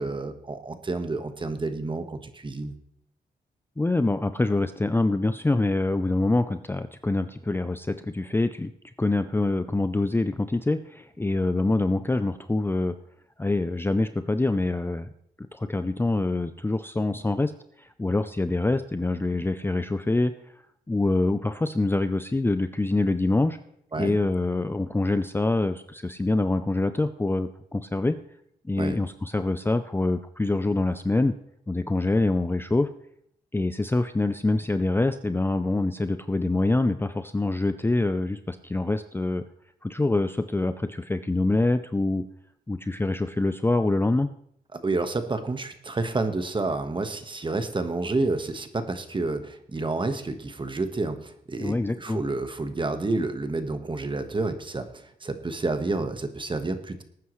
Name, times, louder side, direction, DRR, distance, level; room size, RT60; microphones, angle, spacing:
voice 1, 0.0-2.7 23.9-24.2 28.8-29.0 44.7-54.9 55.2-57.0, right 3 dB, 30° right, 8 dB, 1.4 m, -29 dB
voice 2, 3.8-8.7 9.0-12.9 13.4-15.1 15.5-17.5 17.8-20.3 20.9-23.6 24.0-28.2 28.6-31.3 31.7-32.9 33.5-39.4 39.8-42.2 42.7-44.3 51.6-52.2, left 2 dB, 15° left, 10 dB, 0.5 m, -25 dB
19.0 x 9.4 x 3.2 m, 0.69 s
cardioid pair, 80°, 17 cm